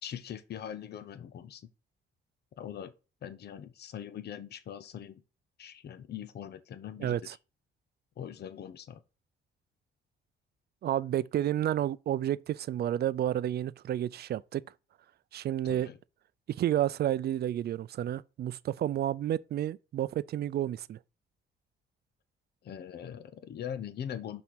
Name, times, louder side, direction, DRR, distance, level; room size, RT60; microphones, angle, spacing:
voice 1, 0.0-1.7 2.6-2.9 3.2-5.2 5.6-7.2 8.2-9.0 15.6-16.0 22.6-24.4, left 9 dB, 55° left, 0.8 m, -41 dB
voice 2, 7.0-7.3 10.8-14.6 15.3-15.9 16.5-21.0, right 11 dB, 55° right, 0.4 m, -30 dB
5.8 x 4.3 x 6.2 m
cardioid pair, 90°, 20 cm